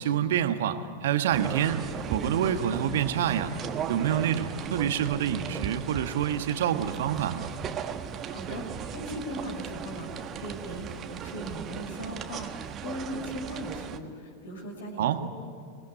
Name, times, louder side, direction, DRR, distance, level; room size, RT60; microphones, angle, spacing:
voice 1, 0.0-1.8 2.1-3.5 3.9-7.5 15.0-15.2, right 9 dB, 55° right, 9 dB, 1.5 m, -27 dB
sound 1, 1.3-14.0, right 8 dB, 30° right, 1.4 m, -37 dB
voice 2, 8.3-15.3, equal, 65° left, 3 dB, 5.3 m, -39 dB
26.0 x 20.0 x 10.0 m, 2.3 s
figure-of-eight pair, 90°, 0 cm